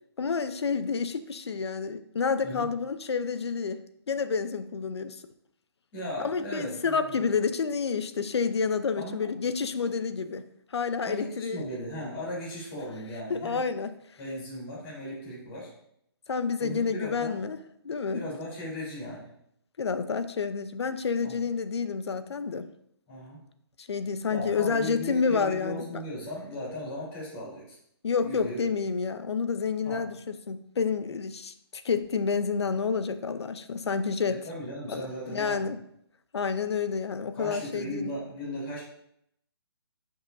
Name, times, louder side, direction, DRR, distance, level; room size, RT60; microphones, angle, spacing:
voice 1, 0.2-5.2 6.2-10.5 10.7-11.7 13.3-14.0 16.3-17.6 17.8-18.2 19.8-22.7 23.8-26.0 28.0-34.4 34.9-35.8 36.3-38.1, left 5 dB, 75° left, 0.7 m, -29 dB
voice 2, 5.9-7.3 8.9-9.3 11.0-13.6 14.2-15.7 16.6-17.4 18.1-19.3 21.2-21.4 23.1-23.4 24.3-27.8 28.2-28.7 29.8-30.0 34.3-35.7 37.3-38.8, equal, 25° left, 3.6 m, -37 dB
12.5 x 5.7 x 2.6 m
hypercardioid pair, 165°, 14 cm